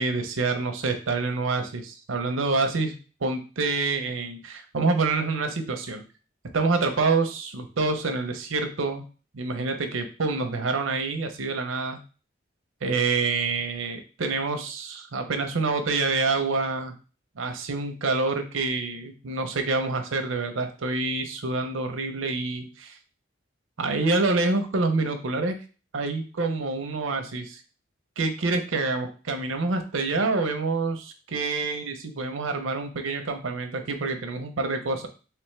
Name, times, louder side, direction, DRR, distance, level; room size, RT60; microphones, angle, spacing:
voice 1, 0.0-2.9 3.2-6.0 6.5-9.0 9.3-12.0 12.8-16.9 17.4-23.0 23.8-25.6 25.9-27.6 28.2-35.1, right 3 dB, 80° right, 6 dB, 0.7 m, -27 dB
3.4 x 3.3 x 3.2 m, 0.35 s
head